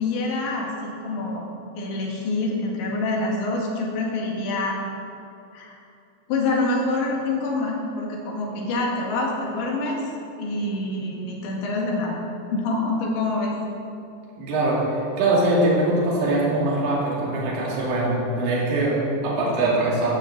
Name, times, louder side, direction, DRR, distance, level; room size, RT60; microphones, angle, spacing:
voice 1, 0.0-1.5 1.8-4.8 5.5-5.8 6.3-10.1 10.4-12.2 12.5-13.6, left 2 dB, 85° left, -2 dB, 4.4 m, -26 dB
voice 2, 14.4-20.1, right 2 dB, 80° right, -6 dB, 5.0 m, -22 dB
12.5 x 7.6 x 7.5 m, 2.6 s
omnidirectional pair, 5.1 m